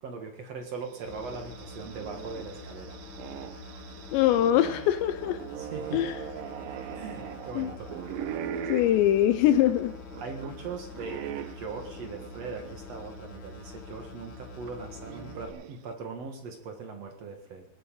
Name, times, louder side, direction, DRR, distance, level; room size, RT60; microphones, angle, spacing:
voice 1, 0.0-3.0 5.6-6.0 6.9-7.9 10.2-17.6, right 4 dB, 60° right, 4 dB, 1.7 m, -40 dB
sound 1, 0.8-13.1 13.5-13.6 14.7-15.9, right 9 dB, 85° right, 2.0 m, -41 dB
sound 2, 1.1-15.5, left 3 dB, 50° left, 3.4 m, -45 dB
voice 2, 4.1-5.4 5.9-6.1 7.6-7.7 8.7-9.9, left 12 dB, 80° left, 11 dB, 2.8 m, -23 dB
19.5 x 8.9 x 7.4 m, 0.83 s
omnidirectional pair, 5.3 m